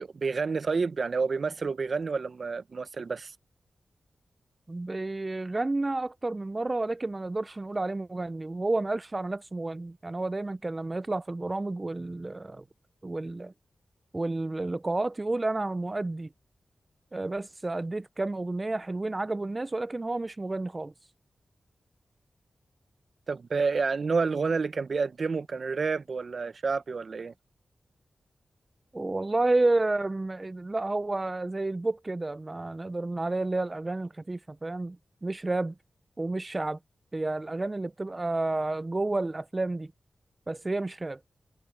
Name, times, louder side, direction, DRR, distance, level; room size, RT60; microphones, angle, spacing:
voice 1, 0.0-3.3 23.3-27.3, right 4 dB, 65° right, 0.9 m, -29 dB
voice 2, 4.7-12.6 13.0-13.5 14.1-16.3 17.1-20.9 28.9-35.0 35.2-35.7 36.2-36.8 37.1-39.9 40.5-41.2, right 2 dB, 30° right, 0.4 m, -30 dB
cardioid pair, 50°, 0 cm